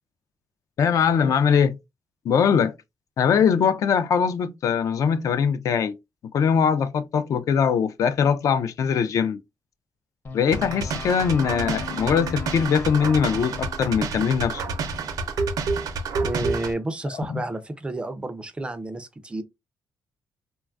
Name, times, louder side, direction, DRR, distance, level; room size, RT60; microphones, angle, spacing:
voice 1, 0.8-1.8 2.3-2.7 3.2-6.0 6.3-9.4 10.3-14.8 17.3-17.4, left 7 dB, 60° left, 0.3 m, -21 dB
sound 1, 10.2-16.5, left 5 dB, 30° left, 0.7 m, -40 dB
sound 2, 10.5-16.7, right 4 dB, 75° right, 0.5 m, -29 dB
voice 2, 16.2-19.4, right 2 dB, 15° right, 0.3 m, -31 dB
3.1 x 2.2 x 2.4 m
cardioid pair, 135°, 6 cm